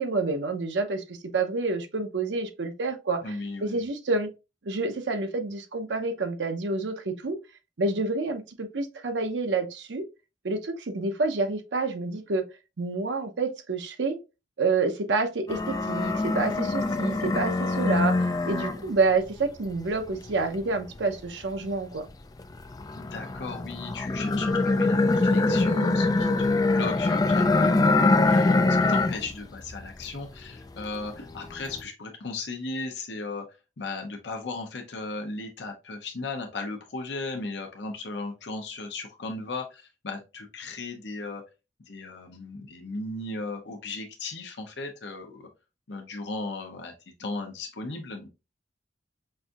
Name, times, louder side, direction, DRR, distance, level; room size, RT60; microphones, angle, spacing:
voice 1, 0.0-3.4 3.6-4.3 4.6-7.4 7.8-10.0 10.4-12.4 12.8-14.2 14.6-22.1, right 3 dB, 90° right, 0.7 m, -28 dB
voice 2, 3.2-3.9 23.0-33.4 33.8-41.4 41.9-45.5 45.9-46.9 47.2-48.3, left 3 dB, 75° left, 0.7 m, -36 dB
sound 1, 15.5-19.1 19.6-21.9 22.4-29.3 29.6-30.4 30.8-31.8, left 3 dB, 20° left, 0.3 m, -24 dB
5.5 x 2.6 x 2.4 m
head